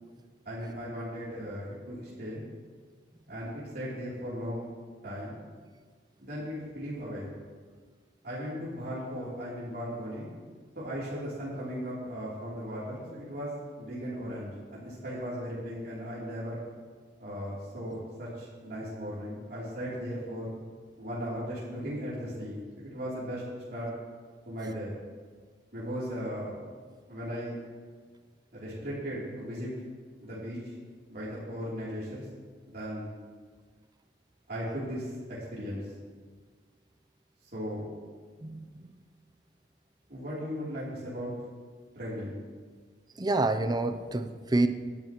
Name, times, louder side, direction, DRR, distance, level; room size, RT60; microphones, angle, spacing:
voice 1, 0.4-2.4 3.3-4.7 5.0-5.4 6.2-7.3 8.2-10.3 10.7-16.6 17.2-20.5 21.0-23.9 24.4-24.9 25.7-26.6 27.1-27.6 28.5-29.7 30.2-30.7 31.1-32.2 32.7-33.1 34.5-35.1 35.5-35.9 37.5-37.9 40.1-41.3 41.9-42.3, equal, 60° right, -9 dB, 3.3 m, -37 dB
voice 2, 43.2-44.7, right 2 dB, 25° right, 9 dB, 0.6 m, -27 dB
18.5 x 10.5 x 3.0 m, 1.5 s
head